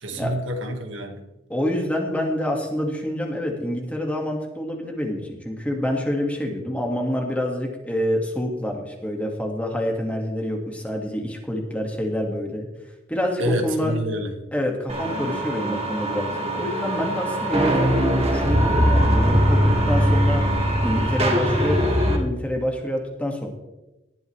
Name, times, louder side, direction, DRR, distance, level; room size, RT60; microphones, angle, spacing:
voice 1, 0.0-1.3 13.4-14.3, right 1 dB, 85° right, 3 dB, 2.1 m, -27 dB
voice 2, 1.5-12.7 13.1-13.9 14.5-20.4 20.8-23.5, left 1 dB, 5° left, 1 dB, 2.2 m, -27 dB
sound 1, 14.9-22.2, equal, 30° right, 2.2 m, -21 dB
18.5 x 12.5 x 3.5 m, 1.0 s
head